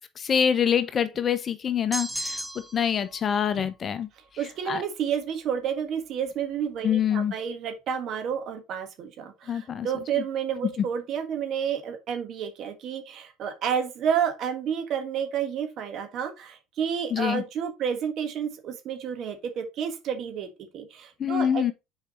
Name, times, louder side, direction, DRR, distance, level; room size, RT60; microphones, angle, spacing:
voice 1, 0.2-4.1 4.7-4.8 6.8-7.3 9.5-9.9 10.2-10.3 10.8-10.9 17.1-17.4 21.2-21.7, left 8 dB, 35° left, 0.8 m, -25 dB
sound 1, 1.9-2.9, right 1 dB, ahead, 1.0 m, -33 dB
voice 2, 4.4-21.7, right 8 dB, 55° right, 1.6 m, -30 dB
6.5 x 4.9 x 3.1 m
supercardioid pair, 85°, 0 cm